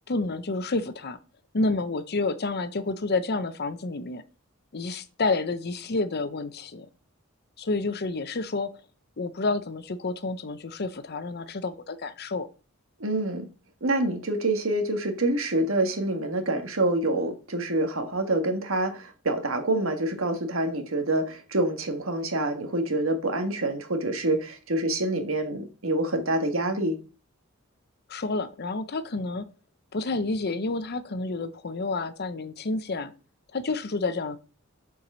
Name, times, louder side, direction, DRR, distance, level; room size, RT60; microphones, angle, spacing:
voice 1, 0.1-1.2 1.5-4.2 4.7-6.9 7.6-8.7 9.2-12.5 28.1-29.5 29.9-33.1 33.5-34.4, left 3 dB, 50° left, 0.7 m, -29 dB
voice 2, 13.0-13.5 13.8-27.0, right 2 dB, 70° right, 1.5 m, -26 dB
6.8 x 4.8 x 6.1 m
head